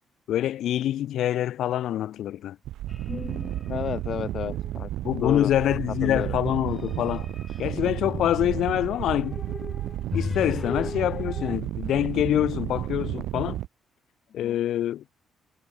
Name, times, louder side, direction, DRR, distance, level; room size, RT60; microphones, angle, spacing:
voice 1, 0.3-2.6 5.0-7.3 7.6-9.4 10.1-13.6 14.3-15.0, left 12 dB, 75° left, 4.4 m, -25 dB
sound 1, 2.6-13.7, right 14 dB, 85° right, 7.2 m, -32 dB
sound 2, 2.9-3.9 4.2-4.8 5.6-11.6, left 4 dB, 30° left, 4.3 m, -38 dB
voice 2, 3.7-4.9 5.2-5.5 6.0-6.4 14.4-14.6, left 8 dB, 60° left, 1.4 m, -31 dB
cardioid pair, 90°, 0 cm